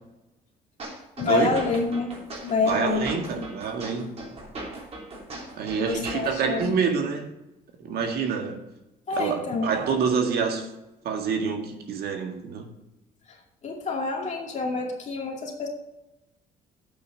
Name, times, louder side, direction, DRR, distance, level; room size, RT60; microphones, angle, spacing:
sound 1, 0.8-6.8, right 2 dB, 40° right, 3.2 m, -39 dB
voice 1, 1.2-2.1 2.4-3.5 5.8-6.8 9.1-9.7 13.3-13.4 13.6-15.7, left 4 dB, 45° left, 2.4 m, -27 dB
voice 2, 2.6-4.2 5.6-7.3 7.8-8.6 9.1-10.7 11.0-12.7, right 6 dB, 65° right, 1.8 m, -27 dB
8.4 x 6.1 x 6.8 m
cardioid pair, 110°, 17 cm